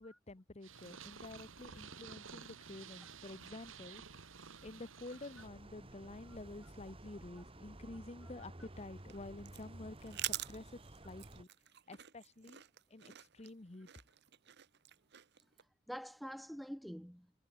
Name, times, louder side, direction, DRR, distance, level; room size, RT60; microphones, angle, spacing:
voice 1, 0.0-4.0 4.6-10.7 11.0-11.5 11.9-12.6 12.9-13.9, left 2 dB, 30° left, 0.9 m, -50 dB
Purr, 0.6-5.5, right 6 dB, 70° right, 1.8 m, -52 dB
sound 1, 5.4-11.4, right 1 dB, 25° right, 1.8 m, -53 dB
sound 2, 8.7-15.6, right 14 dB, 55° right, 1.0 m, -47 dB
voice 2, 15.9-17.5, equal, ahead, 0.3 m, -47 dB
head